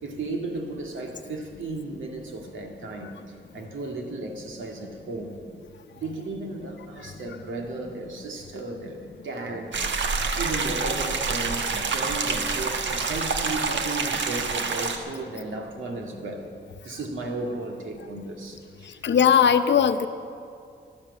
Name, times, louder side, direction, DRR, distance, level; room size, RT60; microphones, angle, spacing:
voice 1, 0.0-5.4 5.9-9.8 10.2-16.5 16.8-19.1, right 2 dB, 90° right, 2 dB, 2.0 m, -34 dB
sound 1, 9.7-15.0, right 4 dB, 70° right, 1.2 m, -27 dB
voice 2, 19.0-20.1, left 8 dB, 65° left, 9 dB, 0.8 m, -18 dB
13.0 x 12.0 x 8.0 m, 2.3 s
wide cardioid pair, 105°, 20 cm